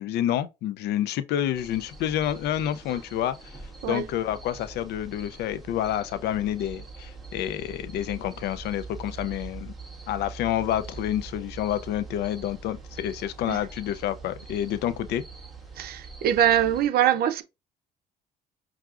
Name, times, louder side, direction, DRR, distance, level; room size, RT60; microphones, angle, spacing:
voice 1, 0.0-3.5 3.9-9.7 10.1-15.2, left 11 dB, 75° left, 0.5 m, -28 dB
sound 1, 1.5-16.9, right 4 dB, ahead, 1.6 m, -43 dB
voice 2, 15.8-17.4, right 10 dB, 65° right, 0.7 m, -23 dB
5.7 x 2.4 x 2.4 m
cardioid pair, 110°, 17 cm